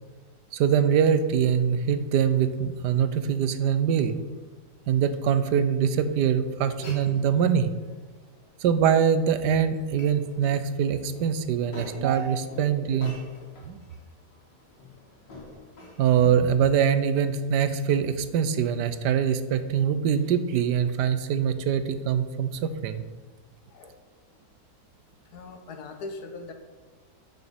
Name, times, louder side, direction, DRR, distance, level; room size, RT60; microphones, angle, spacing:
voice 1, 0.5-4.2 4.9-7.7 8.6-13.2 13.7-13.8 16.0-23.0, right 8 dB, 75° right, 11 dB, 1.2 m, -23 dB
voice 2, 6.5-6.9 8.1-8.2 12.6-12.7 23.7-24.0 25.3-26.5, left 3 dB, 65° left, 6 dB, 1.5 m, -41 dB
Glass, 6.6-16.5, left 2 dB, 85° left, 2.6 m, -48 dB
6.8 x 6.3 x 6.9 m, 1.4 s
omnidirectional pair, 1.9 m